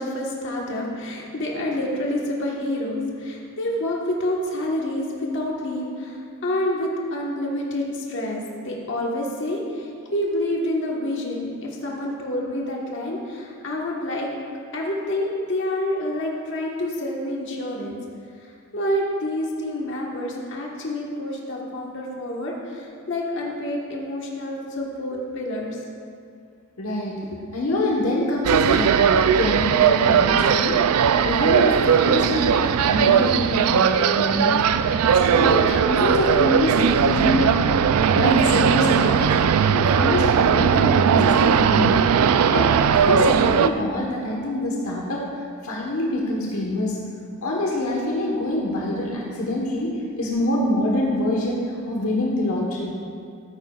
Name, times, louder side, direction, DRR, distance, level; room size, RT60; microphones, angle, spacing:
voice 1, 0.0-6.2 6.4-14.3 14.7-18.0 18.7-25.8, left 1 dB, 55° left, -2 dB, 1.4 m, -28 dB
voice 2, 26.8-30.8 31.2-39.4 39.7-42.0 42.5-45.2 45.6-47.0 47.4-49.9 50.2-52.9, left 1 dB, 70° left, -2 dB, 1.2 m, -25 dB
sound 1, 28.4-43.7, right 7 dB, 75° right, 0.3 m, -18 dB
14.0 x 9.4 x 2.4 m, 2.4 s
head